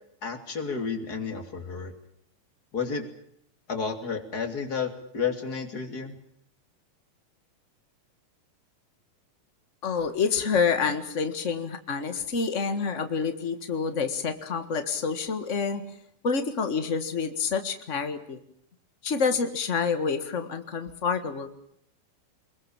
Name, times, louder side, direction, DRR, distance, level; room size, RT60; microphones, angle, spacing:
voice 1, 0.2-1.9 2.7-3.0 3.7-6.2, left 5 dB, 25° left, 5 dB, 2.9 m, -31 dB
voice 2, 9.8-15.8 16.2-18.4 19.0-21.5, left 5 dB, 85° left, 8 dB, 0.6 m, -28 dB
25.5 x 21.5 x 7.3 m, 0.70 s
omnidirectional pair, 4.3 m